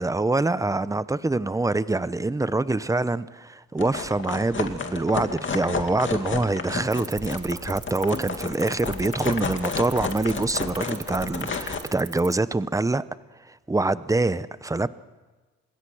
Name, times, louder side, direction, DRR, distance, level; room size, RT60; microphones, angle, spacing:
voice 1, 0.0-13.0 13.5-14.9, right 2 dB, 10° right, 15 dB, 0.8 m, -25 dB
sound 1, 3.8-11.8, left 5 dB, 40° left, 2.5 m, -31 dB
sound 2, 6.8-12.3, right 6 dB, 35° right, 1.1 m, -40 dB
26.5 x 20.5 x 6.3 m, 1.3 s
cardioid pair, 90°, 30 cm